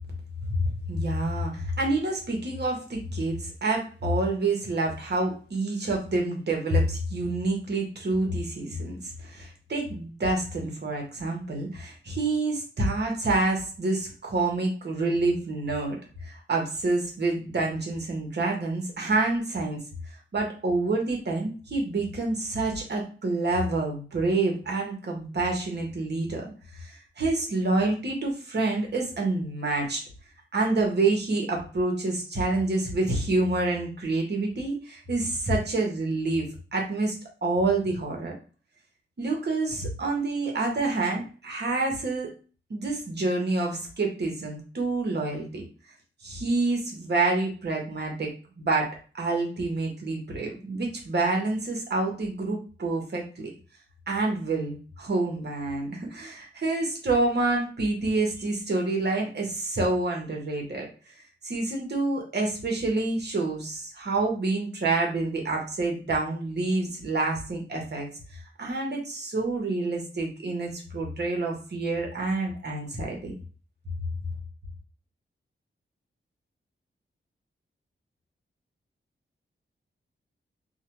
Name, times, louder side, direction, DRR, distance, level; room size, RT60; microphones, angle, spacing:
voice 1, 0.5-19.8 20.3-26.5 26.8-30.0 30.5-37.1 37.4-38.3 39.2-42.3 42.7-45.7 46.2-53.5 54.1-60.9 61.4-73.3, right 2 dB, 55° right, 0 dB, 0.9 m, -28 dB
2.5 x 2.1 x 3.0 m, 0.37 s
cardioid pair, 55°, 21 cm